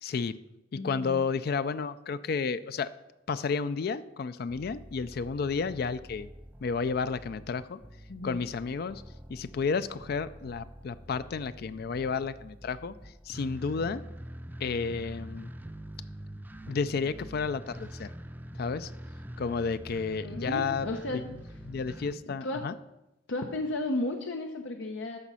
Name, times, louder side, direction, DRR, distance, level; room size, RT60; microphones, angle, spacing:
voice 1, 0.0-0.4 0.8-2.9 3.3-6.3 6.6-7.8 8.2-9.0 9.3-13.0 13.3-14.0 14.6-15.5 16.7-18.1 18.5-18.9 19.4-20.9 21.1-21.2 21.7-22.7, left 5 dB, 55° left, 14 dB, 0.4 m, -31 dB
voice 2, 0.8-1.2 8.1-8.4 20.2-21.2 21.5-21.6 22.4-22.7 23.3-25.2, left 2 dB, 90° left, 3 dB, 0.8 m, -34 dB
sound 1, 4.5-22.1, right 1 dB, 10° right, 0.5 m, -45 dB
13.5 x 5.0 x 5.6 m, 0.92 s
head